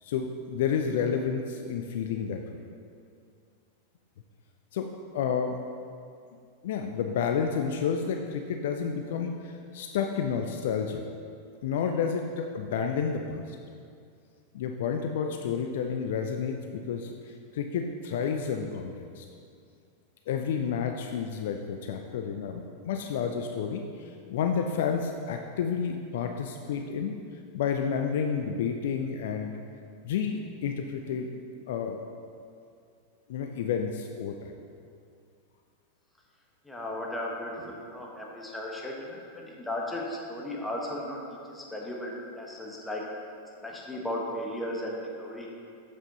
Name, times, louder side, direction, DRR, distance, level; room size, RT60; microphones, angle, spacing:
voice 1, 0.0-2.6 4.7-4.9 5.1-5.6 6.6-11.0 11.6-13.6 14.5-19.2 20.3-27.2 27.5-29.5 30.0-31.3 31.7-32.0 33.3-34.5, left 6 dB, 55° left, 4 dB, 0.4 m, -30 dB
voice 2, 36.6-41.2 41.5-43.0 43.6-45.5, left 1 dB, 5° left, -2 dB, 1.3 m, -35 dB
7.5 x 6.2 x 3.9 m, 2.4 s
figure-of-eight pair, 90°, 0 cm